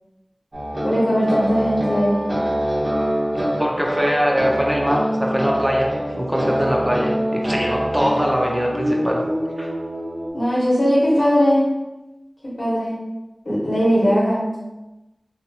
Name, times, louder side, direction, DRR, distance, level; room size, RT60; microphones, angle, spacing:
sound 1, 0.5-10.3, equal, 70° right, 0.8 m, -24 dB
voice 1, 0.8-2.3 10.3-11.7 12.6-13.0 13.4-14.5, equal, 80° left, -8 dB, 1.0 m, -19 dB
voice 2, 3.6-5.9 6.2-9.2 9.6-9.7, equal, 10° right, -1 dB, 0.4 m, -22 dB
2.6 x 2.2 x 2.7 m, 1.0 s
wide cardioid pair, 50°, 0 cm